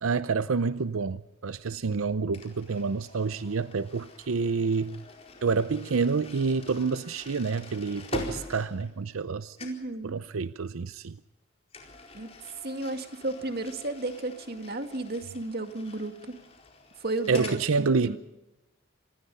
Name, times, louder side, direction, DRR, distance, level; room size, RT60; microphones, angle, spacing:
voice 1, 0.0-5.0 5.4-9.6 10.0-11.2 17.3-18.2, right 4 dB, 90° right, 0.6 m, -28 dB
sound 1, 2.3-9.3 9.6-9.9 11.7-17.6, left 2 dB, 30° left, 4.4 m, -45 dB
voice 2, 9.6-10.2 12.1-12.3 12.6-16.4 17.0-18.2, right 2 dB, 50° right, 2.1 m, -33 dB
27.0 x 20.0 x 5.5 m
head